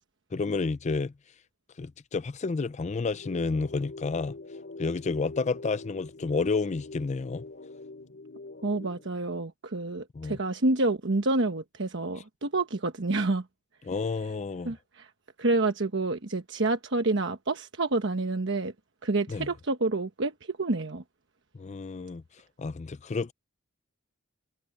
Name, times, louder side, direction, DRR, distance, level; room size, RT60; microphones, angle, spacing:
voice 1, 0.3-1.1 1.8-4.4 4.8-7.4 10.1-10.4 13.8-14.8 19.3-19.5 21.5-22.2 22.6-23.3, left 4 dB, 35° left, 0.4 m, -30 dB
sound 1, 3.1-9.1, left 2 dB, 55° left, 3.1 m, -44 dB
voice 2, 8.6-13.4 14.6-15.1 15.4-18.7 19.0-21.0, right 2 dB, 65° right, 1.2 m, -28 dB
head